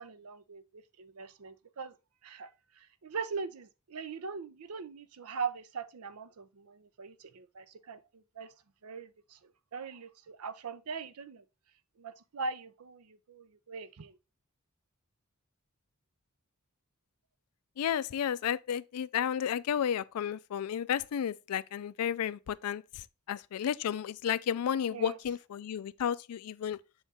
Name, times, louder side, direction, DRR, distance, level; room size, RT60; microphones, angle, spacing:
voice 1, 0.0-1.9 2.2-2.5 2.8-8.5 8.8-11.4 12.0-14.2 24.9-25.2, right 5 dB, 85° right, 0.6 m, -41 dB
voice 2, 17.8-22.8 23.3-26.8, left 8 dB, 85° left, 0.4 m, -32 dB
7.1 x 3.6 x 4.0 m
head